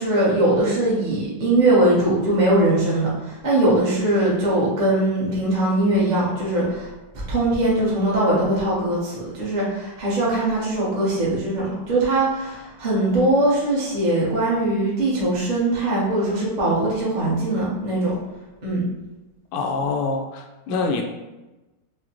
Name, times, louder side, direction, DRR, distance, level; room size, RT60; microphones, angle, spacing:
voice 1, 0.0-6.9 7.3-18.1 18.6-18.8, right 1 dB, 40° right, -7 dB, 0.6 m, -21 dB
voice 2, 19.5-21.0, left 4 dB, 75° left, 2 dB, 0.9 m, -25 dB
4.8 x 2.0 x 2.9 m, 1.1 s
omnidirectional pair, 2.1 m